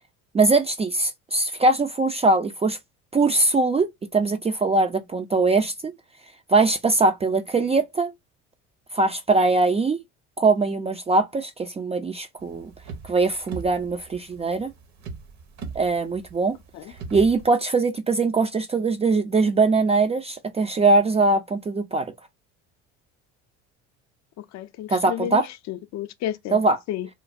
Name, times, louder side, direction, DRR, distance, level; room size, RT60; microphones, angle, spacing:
voice 1, 0.3-2.8 3.1-5.9 6.5-8.1 8.9-10.0 10.4-12.7 13.0-14.7 15.8-16.6 17.1-22.1 24.9-25.4 26.5-26.8, right 3 dB, 20° right, 0.3 m, -21 dB
sound 1, 12.4-17.5, right 5 dB, 50° right, 0.8 m, -39 dB
voice 2, 24.4-26.6 26.9-27.1, left 12 dB, 50° left, 0.5 m, -32 dB
3.1 x 2.0 x 2.5 m
supercardioid pair, 80°, 37 cm